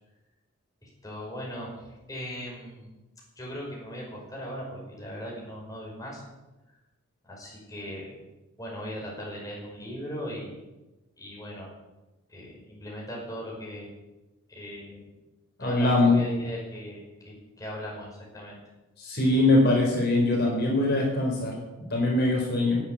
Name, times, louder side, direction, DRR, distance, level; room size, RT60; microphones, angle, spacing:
voice 1, 0.8-2.9 3.4-6.2 7.2-8.1 8.6-10.6 11.2-11.7 12.3-13.9 14.5-15.1 15.6-18.6, equal, 15° left, -3 dB, 5.4 m, -38 dB
voice 2, 15.6-16.2 19.0-21.5 21.9-22.8, left 2 dB, 50° left, -1 dB, 4.2 m, -22 dB
18.5 x 8.4 x 8.7 m, 1.1 s
head